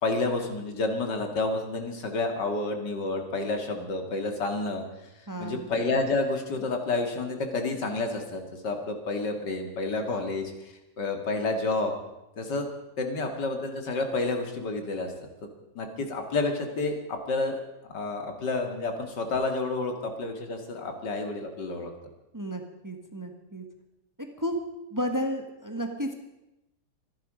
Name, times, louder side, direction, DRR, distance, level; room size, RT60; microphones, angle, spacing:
voice 1, 0.0-4.8 5.4-11.9 12.4-12.7 13.0-15.1 15.8-17.6 17.9-21.9, left 3 dB, 75° left, 5 dB, 2.7 m, -29 dB
voice 2, 5.3-5.7 22.3-23.6 24.4-24.5 24.9-26.1, equal, 10° right, 5 dB, 1.2 m, -32 dB
25.5 x 10.5 x 5.1 m, 0.94 s
omnidirectional pair, 1.9 m